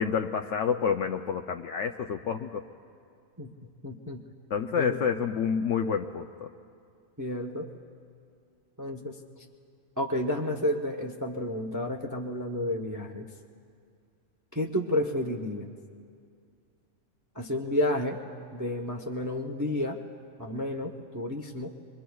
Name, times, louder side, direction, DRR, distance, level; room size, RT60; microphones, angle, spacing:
voice 1, 0.0-2.6 4.5-6.5, left 6 dB, 65° left, 5 dB, 0.8 m, -28 dB
voice 2, 3.8-4.2 4.8-5.0 7.2-7.7 8.8-9.2 10.0-13.3 14.5-15.7 17.3-18.2 18.5-20.0 20.4-21.7, left 1 dB, 20° right, 2 dB, 0.6 m, -31 dB
26.0 x 23.0 x 2.3 m, 2.3 s
omnidirectional pair, 1.5 m